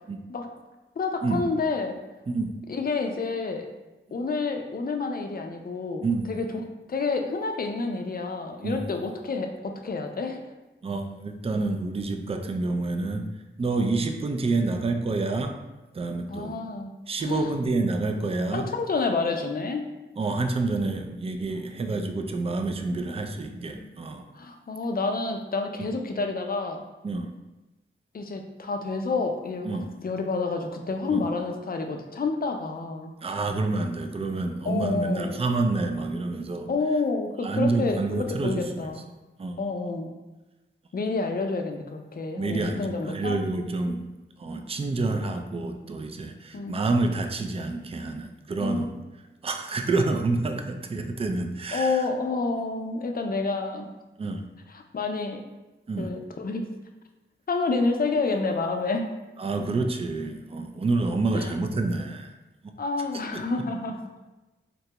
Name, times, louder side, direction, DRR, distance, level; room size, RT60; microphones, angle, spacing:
voice 1, 1.0-2.0 2.7-3.7 4.1-6.5 6.9-10.4 13.8-14.0 16.3-16.9 17.2-17.5 18.5-19.9 24.3-26.8 28.1-33.1 34.6-35.4 36.7-39.0 39.6-40.1 40.9-43.4 46.5-46.8 48.6-48.9 51.7-53.9 54.7-55.4 56.0-56.7 57.5-59.1 61.3-61.5 62.8-64.1, left 3 dB, 45° left, 4 dB, 0.4 m, -29 dB
voice 2, 2.3-2.6 6.0-6.3 8.6-8.8 10.8-13.3 13.6-15.5 15.9-16.6 17.1-18.7 20.2-24.3 27.0-27.3 29.6-29.9 31.1-31.2 33.2-36.7 37.4-38.9 39.4-39.6 42.4-44.0 44.4-48.9 49.4-52.1 54.2-54.4 55.9-56.1 59.4-62.3, right 3 dB, 30° right, 5 dB, 0.3 m, -28 dB
3.9 x 2.2 x 2.8 m, 1.1 s
wide cardioid pair, 60°, 21 cm